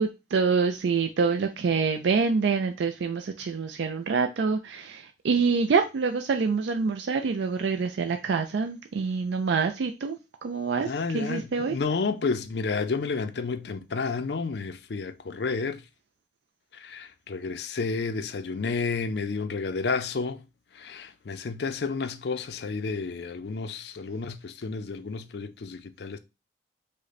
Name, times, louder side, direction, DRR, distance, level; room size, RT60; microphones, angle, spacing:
voice 1, 0.0-11.8, right 5 dB, 75° right, 0.4 m, -26 dB
voice 2, 10.9-15.8 16.7-20.4 20.7-26.2, left 4 dB, 65° left, 0.5 m, -31 dB
5.1 x 2.2 x 4.1 m
head